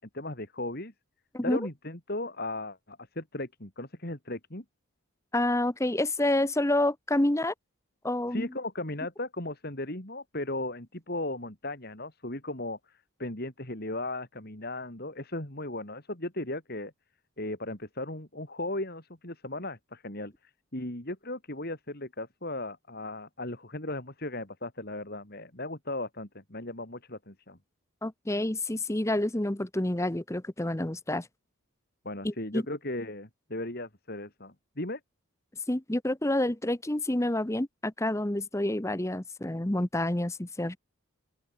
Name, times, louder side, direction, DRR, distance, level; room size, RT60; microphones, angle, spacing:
voice 1, 0.1-0.9 1.4-4.6 8.3-16.9 17.4-27.6 32.0-35.0, left 2 dB, 45° left, 3.3 m, -36 dB
voice 2, 5.3-7.5 8.0-8.5 28.0-31.3 32.2-32.6 35.7-40.8, left 1 dB, 15° left, 0.8 m, -28 dB
open air
head